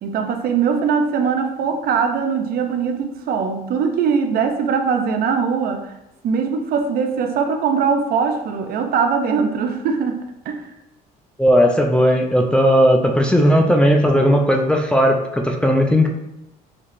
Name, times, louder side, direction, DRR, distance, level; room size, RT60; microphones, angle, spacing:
voice 1, 0.0-5.9 6.2-10.6, right 6 dB, 60° right, 5 dB, 0.5 m, -21 dB
voice 2, 11.4-16.1, equal, 5° left, 2 dB, 0.4 m, -16 dB
4.5 x 2.8 x 2.5 m, 0.88 s
cardioid pair, 110°, 17 cm